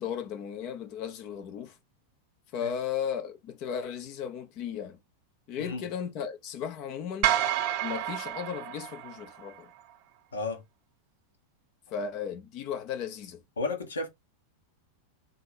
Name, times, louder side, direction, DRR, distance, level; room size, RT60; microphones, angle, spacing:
voice 1, 0.0-1.8 2.5-5.0 5.5-7.3 7.8-9.7 11.9-13.4, left 8 dB, 40° left, 0.8 m, -35 dB
sound 1, 7.2-9.6, right 12 dB, 45° right, 0.5 m, -29 dB
voice 2, 10.3-10.6 13.6-14.1, left 3 dB, 70° left, 1.1 m, -32 dB
3.8 x 2.7 x 4.3 m
figure-of-eight pair, 90°, 0 cm